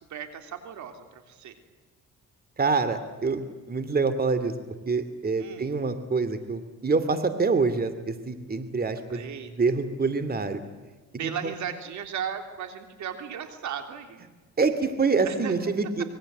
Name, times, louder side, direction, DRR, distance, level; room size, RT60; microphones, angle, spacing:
voice 1, 0.1-1.6 5.4-5.8 9.1-9.5 11.2-14.3 15.2-15.5, right 8 dB, 70° right, 7 dB, 3.4 m, -36 dB
voice 2, 2.6-4.5 4.9-9.2 9.6-10.6 11.2-11.5 14.6-16.0, right 4 dB, 30° right, 11 dB, 2.6 m, -26 dB
26.0 x 22.0 x 8.0 m, 1.2 s
cardioid pair, 90°, 30 cm